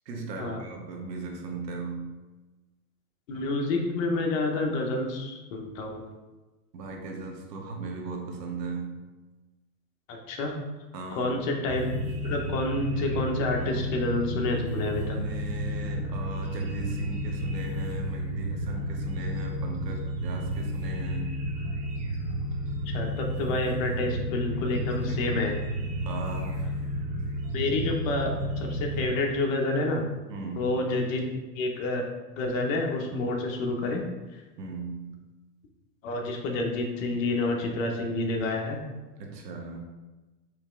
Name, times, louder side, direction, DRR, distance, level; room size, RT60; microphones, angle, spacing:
voice 1, 0.0-2.2 6.7-9.1 10.9-11.4 15.0-21.4 24.9-25.3 26.0-26.6 30.3-30.8 34.6-35.3 39.2-39.8, right 3 dB, 80° right, 2 dB, 1.2 m, -38 dB
voice 2, 3.3-6.0 10.1-10.6 11.2-15.2 22.9-25.5 27.5-30.0 30.6-31.2 31.5-32.1 32.4-34.0 34.3-34.4 36.0-38.8, left 2 dB, 55° left, 2 dB, 1.1 m, -29 dB
sound 1, 11.7-29.1, equal, 15° right, 0.4 m, -32 dB
4.4 x 3.2 x 3.7 m, 1.2 s
hypercardioid pair, 120°, 49 cm